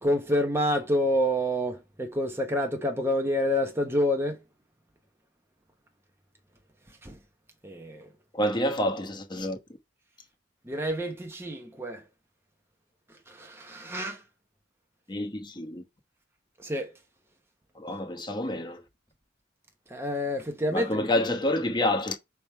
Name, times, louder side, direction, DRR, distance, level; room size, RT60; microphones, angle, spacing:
voice 1, 0.0-4.4 7.0-7.2 7.6-8.1 10.7-12.0 13.3-14.2 16.6-16.9 19.9-21.1, equal, 15° right, 0.9 m, -28 dB
voice 2, 8.3-9.6 15.1-15.8 17.7-18.8 20.7-22.2, left 1 dB, 25° left, 1.1 m, -28 dB
6.0 x 3.6 x 4.5 m
head